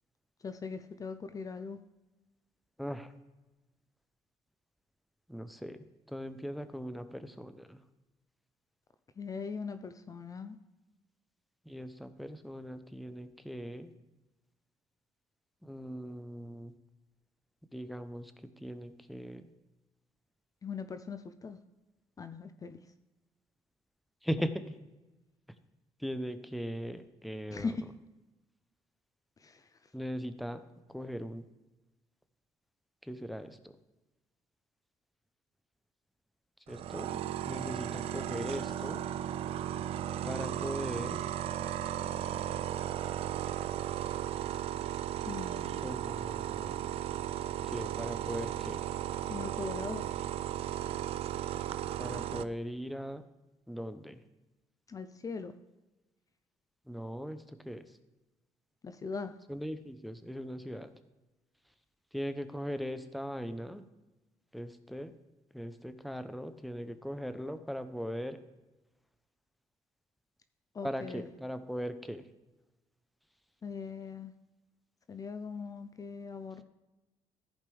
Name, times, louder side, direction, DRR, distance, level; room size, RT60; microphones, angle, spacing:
voice 1, 0.4-1.8 9.2-10.6 20.6-21.6 22.2-22.8 27.5-27.8 29.4-29.6 45.3-46.0 49.3-50.0 54.9-55.5 58.8-59.3 70.7-71.3 73.6-74.3 75.1-76.6, left 5 dB, 30° left, 9 dB, 0.6 m, -40 dB
voice 2, 2.8-3.1 5.3-5.8 6.1-7.8 11.7-13.9 15.6-16.7 17.7-18.3 18.6-19.5 24.2-24.6 26.0-27.8 29.9-30.6 30.9-31.4 33.1-33.7 36.7-39.0 40.2-41.2 45.8-46.8 47.6-48.8 52.0-53.2 53.7-54.2 56.9-57.9 59.5-60.9 62.1-63.8 64.5-65.1 65.5-68.4 70.8-72.3, equal, ahead, 10 dB, 0.8 m, -39 dB
sound 1, 36.7-52.4, right 11 dB, 65° right, 0.4 m, -35 dB
15.0 x 5.2 x 3.4 m, 1.1 s
cardioid pair, 90°, 11 cm